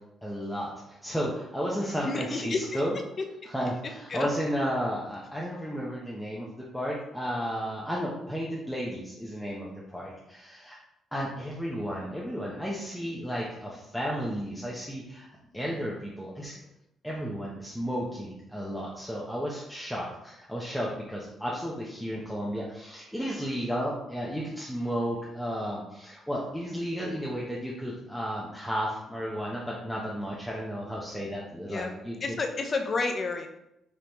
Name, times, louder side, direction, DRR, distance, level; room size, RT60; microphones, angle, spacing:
voice 1, 0.2-2.9 3.5-10.8 11.1-15.3 15.5-16.6 17.0-32.2, equal, ahead, -5 dB, 0.8 m, -33 dB
voice 2, 1.8-2.8 3.6-3.7 4.1-4.3 31.6-31.9 32.2-33.5, left 3 dB, 45° left, 4 dB, 0.7 m, -31 dB
5.3 x 3.1 x 3.0 m, 0.84 s
cardioid pair, 90°, 0 cm